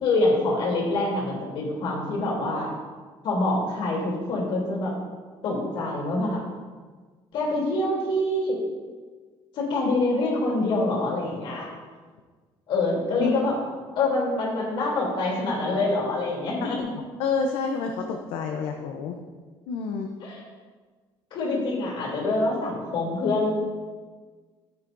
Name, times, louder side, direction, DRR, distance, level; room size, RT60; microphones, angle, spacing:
voice 1, 0.0-2.7 3.2-4.9 5.4-6.4 7.3-8.6 9.5-11.7 12.7-13.5 13.9-16.9 20.2-20.4 21.3-23.5, left 2 dB, 55° left, -3 dB, 3.1 m, -25 dB
voice 2, 17.2-19.2 19.7-20.1, left 5 dB, 90° left, 3 dB, 0.7 m, -28 dB
13.0 x 8.2 x 2.6 m, 1.4 s
cardioid pair, 170°, 10 cm